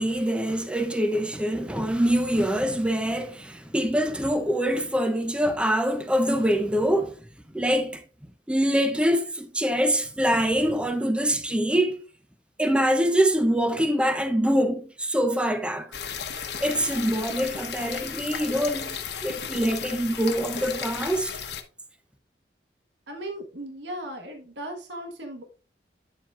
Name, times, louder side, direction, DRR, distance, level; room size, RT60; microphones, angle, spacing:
voice 1, 0.0-7.2 7.5-8.0 8.5-12.0 12.6-15.9 16.6-21.4, equal, 5° right, 0.6 m, -24 dB
sound 1, 15.9-21.6, left 7 dB, 70° left, 1.1 m, -34 dB
voice 2, 23.1-25.4, right 1 dB, 90° right, 1.5 m, -37 dB
9.0 x 7.3 x 2.4 m
head